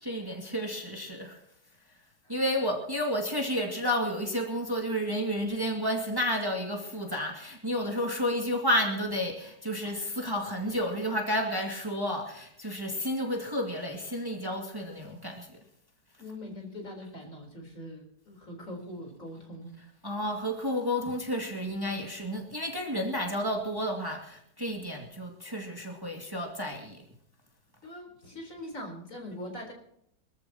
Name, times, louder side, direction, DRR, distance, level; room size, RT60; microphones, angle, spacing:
voice 1, 0.0-1.4 2.3-15.5 20.0-27.0, equal, 15° right, 1 dB, 2.4 m, -31 dB
voice 2, 16.2-19.8 27.8-29.7, left 1 dB, 50° left, 1 dB, 4.8 m, -42 dB
24.5 x 14.5 x 3.0 m, 0.73 s
omnidirectional pair, 1.7 m